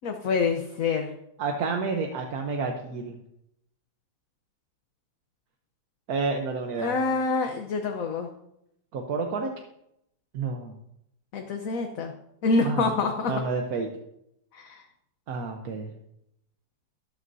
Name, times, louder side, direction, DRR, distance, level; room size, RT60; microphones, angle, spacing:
voice 1, 0.0-1.1 6.8-8.3 11.3-12.1 12.4-13.3 14.5-14.8, left 4 dB, 55° left, 4 dB, 1.1 m, -26 dB
voice 2, 1.4-3.2 6.1-7.0 8.9-9.5 10.3-10.8 12.6-12.9 13.3-13.9 15.3-15.9, right 4 dB, 55° right, 3 dB, 1.3 m, -29 dB
13.0 x 12.5 x 2.7 m, 0.80 s
omnidirectional pair, 2.1 m